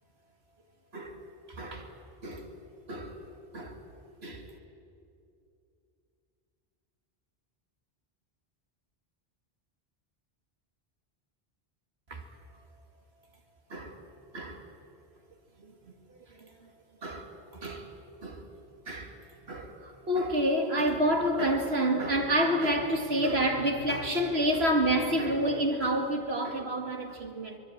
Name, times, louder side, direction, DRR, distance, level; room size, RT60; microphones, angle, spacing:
voice 1, 1.5-1.9 2.2-2.5 2.9-3.2 3.5-3.8 4.2-4.4 12.1-12.2 13.7-14.0 14.3-14.6 16.4-16.5 17.0-17.3 17.6-17.9 18.2-18.4 18.9-19.1 19.5-27.6, right 1 dB, 90° right, 2.6 m, -28 dB
24.5 x 20.0 x 8.8 m
omnidirectional pair, 1.0 m